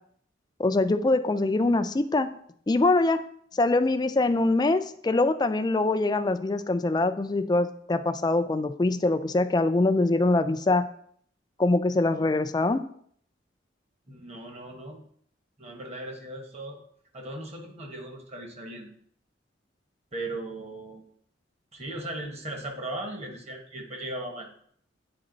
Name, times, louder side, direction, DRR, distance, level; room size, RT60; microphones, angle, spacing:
voice 1, 0.6-2.3 2.7-3.2 3.5-10.8 11.6-12.8, left 2 dB, 20° left, 10 dB, 0.3 m, -23 dB
voice 2, 14.1-15.0 15.6-16.8 17.1-18.9 20.1-21.0 21.7-24.5, right 1 dB, 35° right, 2 dB, 1.2 m, -37 dB
8.7 x 4.0 x 3.9 m, 0.63 s
head